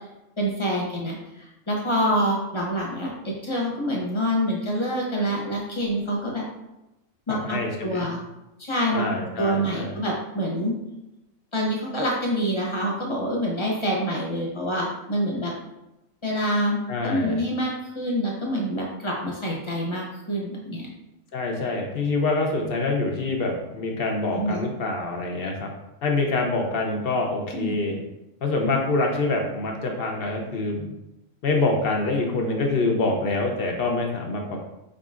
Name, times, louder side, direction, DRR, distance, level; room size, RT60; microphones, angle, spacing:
voice 1, 0.4-6.5 7.3-8.2 8.6-9.0 9.4-10.7 11.5-15.5 16.2-16.8 17.0-20.9 24.3-24.6 27.5-27.7, equal, 25° left, -2 dB, 0.9 m, -26 dB
voice 2, 7.3-8.1 8.9-9.9 16.9-17.5 21.3-25.7 26.0-28.0 28.4-30.9 31.4-34.6, left 3 dB, 55° left, 1 dB, 0.8 m, -25 dB
4.8 x 3.8 x 2.4 m, 0.93 s
omnidirectional pair, 1.4 m